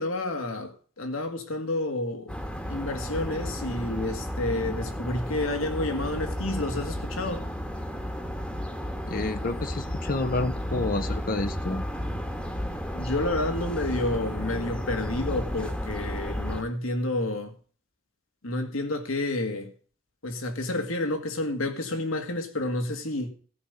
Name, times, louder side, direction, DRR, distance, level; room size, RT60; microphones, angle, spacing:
voice 1, 0.0-2.3 2.7-7.4 12.9-17.5 18.4-19.7 20.2-23.3, left 2 dB, 85° left, 1.9 m, -30 dB
sound 1, 2.3-16.6, equal, 5° left, 1.2 m, -33 dB
voice 2, 9.1-11.8, left 2 dB, 45° left, 0.6 m, -29 dB
14.0 x 5.3 x 8.1 m
head